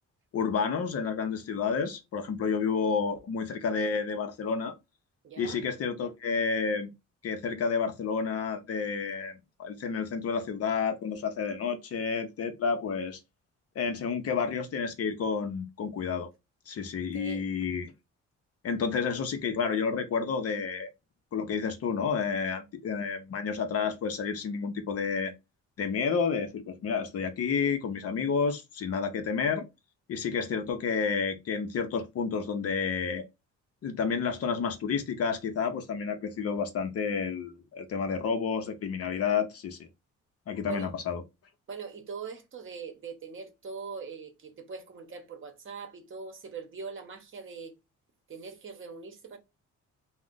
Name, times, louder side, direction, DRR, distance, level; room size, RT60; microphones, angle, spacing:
voice 1, 0.3-4.7 5.4-6.9 7.2-13.2 13.8-16.3 16.7-17.9 18.6-20.9 21.3-25.3 25.8-29.7 30.1-33.2 33.8-39.8 40.5-41.2, left 5 dB, 55° left, 0.6 m, -30 dB
voice 2, 5.2-5.6 17.1-17.4 40.7-40.9 41.7-47.8 48.3-49.4, right 5 dB, 45° right, 0.8 m, -42 dB
2.4 x 2.1 x 3.7 m
cardioid pair, 90°, 30 cm